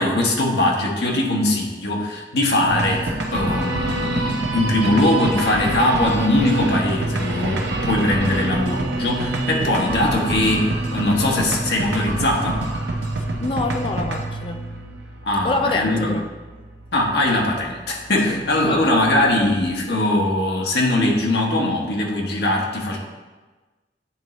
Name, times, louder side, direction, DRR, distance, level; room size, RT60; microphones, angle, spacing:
voice 1, 0.0-12.6 15.3-16.1 16.9-23.0, left 1 dB, 70° left, -1 dB, 1.2 m, -21 dB
sound 1, 2.7-19.8, right 2 dB, 90° right, 0.8 m, -27 dB
voice 2, 9.5-9.8 13.2-14.6 15.4-16.3 18.3-19.0, left 2 dB, 30° left, 6 dB, 0.3 m, -27 dB
9.3 x 3.9 x 3.2 m, 1.3 s
head